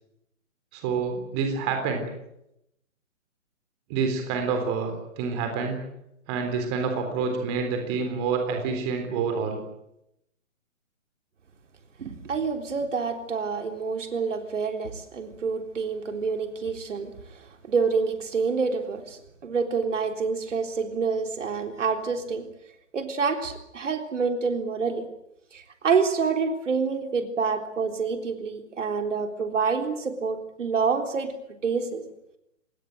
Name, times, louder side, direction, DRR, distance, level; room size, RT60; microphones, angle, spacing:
voice 1, 0.7-2.1 3.9-5.8 6.3-9.6, right 5 dB, 20° right, 5 dB, 3.7 m, -27 dB
voice 2, 12.0-17.1 17.7-22.5 22.9-25.0 25.5-31.3 31.6-32.1, right 5 dB, 65° right, 6 dB, 3.8 m, -27 dB
26.5 x 20.0 x 7.8 m, 0.82 s
hypercardioid pair, 170°, 40 cm